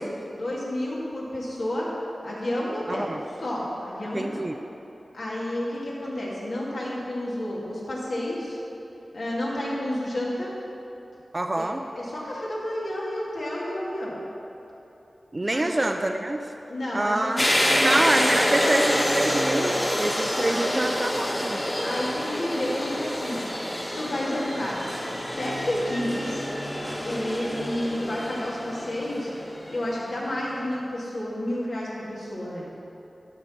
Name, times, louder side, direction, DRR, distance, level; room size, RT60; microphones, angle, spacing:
voice 1, 0.0-1.9 2.2-4.4 5.1-8.6 9.1-10.5 11.5-14.2 15.5-15.8 16.7-17.8 18.3-19.1 20.4-20.8 21.8-23.4 23.8-24.8 25.2-26.5 27.0-29.3 29.7-32.7, left 1 dB, 80° left, -6 dB, 2.2 m, -31 dB
voice 2, 2.9-3.2 4.1-4.6 11.3-11.8 15.3-16.4 16.9-17.4 17.8-21.6, right 1 dB, 35° right, 5 dB, 0.4 m, -26 dB
sound 1, 17.4-30.1, equal, 30° left, 1.5 m, -27 dB
12.0 x 4.5 x 5.8 m, 3.0 s
wide cardioid pair, 55°, 0 cm